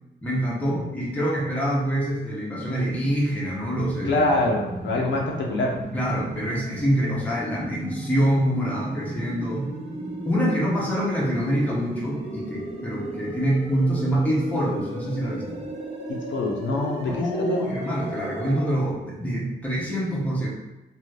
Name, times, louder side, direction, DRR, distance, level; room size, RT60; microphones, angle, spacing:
voice 1, 0.2-4.2 5.9-9.7 10.3-15.7 17.0-20.5, equal, 10° left, -5 dB, 0.7 m, -25 dB
sound 1, 3.7-18.6, right 1 dB, 35° right, 0.7 m, -35 dB
voice 2, 4.0-5.7 16.1-17.7, left 2 dB, 80° left, -1 dB, 0.6 m, -25 dB
2.6 x 2.5 x 3.2 m, 1.1 s
wide cardioid pair, 135°, 19 cm